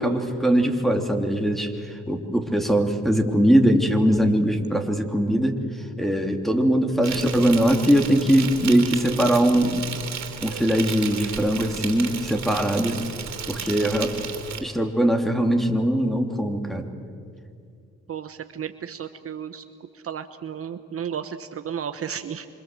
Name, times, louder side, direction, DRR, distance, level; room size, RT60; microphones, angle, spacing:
voice 1, 0.0-5.6 6.0-9.8 10.4-13.0 13.5-14.1 14.6-16.9, equal, ahead, 5 dB, 2.8 m, -21 dB
Insect, 7.0-14.6, right 8 dB, 65° right, 3.4 m, -34 dB
voice 2, 18.1-19.6 19.9-22.5, right 8 dB, 50° right, 9 dB, 1.1 m, -33 dB
27.0 x 25.5 x 7.7 m, 2.4 s
cardioid pair, 90°, 30 cm